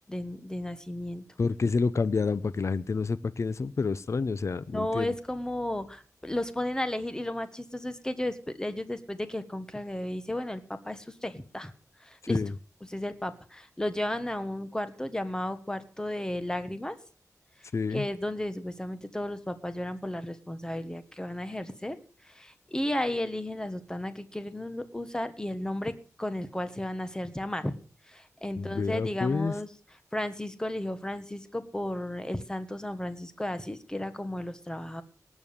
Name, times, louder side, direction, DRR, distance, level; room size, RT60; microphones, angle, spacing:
voice 1, 0.1-1.2 4.7-11.7 12.0-12.4 12.8-17.0 17.9-22.0 22.2-27.7 28.1-29.7 30.1-35.0, left 1 dB, 10° left, 11 dB, 1.4 m, -34 dB
voice 2, 1.4-5.1 12.3-12.5 17.7-18.1 28.6-29.5, left 4 dB, 55° left, 17 dB, 0.6 m, -28 dB
19.0 x 7.2 x 7.2 m, 0.42 s
wide cardioid pair, 105°, 6 cm